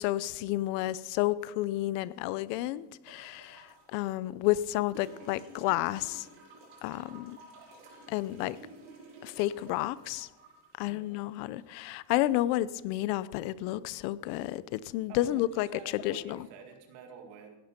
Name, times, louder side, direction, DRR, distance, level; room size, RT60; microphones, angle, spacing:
voice 1, 0.0-6.3 6.8-7.4 8.1-8.6 9.2-10.3 10.8-15.7 15.9-16.4, left 15 dB, 80° left, 18 dB, 0.8 m, -31 dB
sound 1, 3.1-3.9 4.9-11.9 13.3-13.4, right 2 dB, 60° right, 6.0 m, -53 dB
voice 2, 15.1-15.4 15.7-17.6, right 6 dB, 75° right, 3 dB, 2.3 m, -49 dB
16.5 x 10.5 x 5.2 m, 1.1 s
cardioid pair, 145°, 44 cm